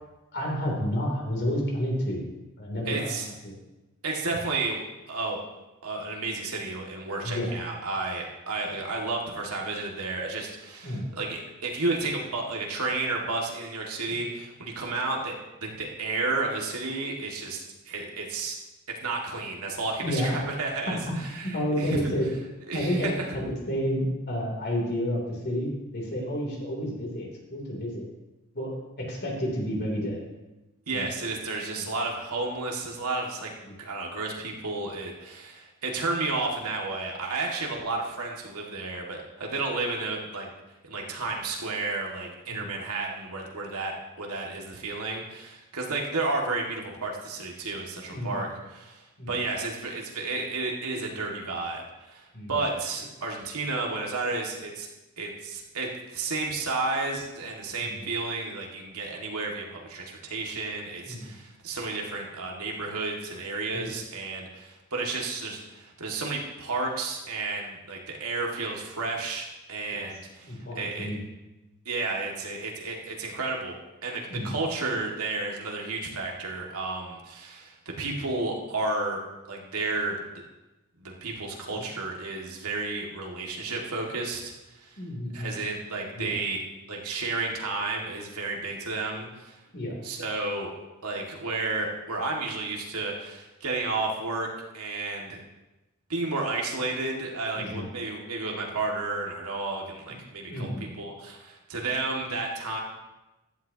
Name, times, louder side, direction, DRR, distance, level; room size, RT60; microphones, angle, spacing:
voice 1, 0.3-2.2 2.6-3.1 3.4-3.6 7.2-7.5 10.8-11.1 14.1-14.2 20.0-20.3 21.1-21.2 21.4-22.2 22.7-23.1 23.7-28.0 28.5-30.2 30.9-31.1 31.7-31.8 33.6-33.8 42.5-42.7 48.1-48.4 49.2-49.3 52.3-52.6 57.8-58.0 61.0-61.4 63.7-63.9 69.9-70.1 70.4-71.2 74.3-74.6 81.7-81.8 85.0-85.5 86.1-86.4 89.7-90.0 97.5-97.9 100.1-100.2 100.5-100.9, equal, 50° left, -1 dB, 3.2 m, -30 dB
voice 2, 2.9-3.3 4.0-5.4 5.8-18.6 19.0-22.0 22.7-23.1 30.9-33.5 33.8-40.5 40.8-54.9 55.2-71.1 71.9-73.8 74.0-79.2 79.5-80.2 81.0-85.0 85.3-86.6 86.9-89.6 90.0-90.7 91.0-94.5 94.7-95.4 96.1-102.8, right 3 dB, 85° right, -1 dB, 2.1 m, -32 dB
15.0 x 11.5 x 2.9 m, 1.0 s
head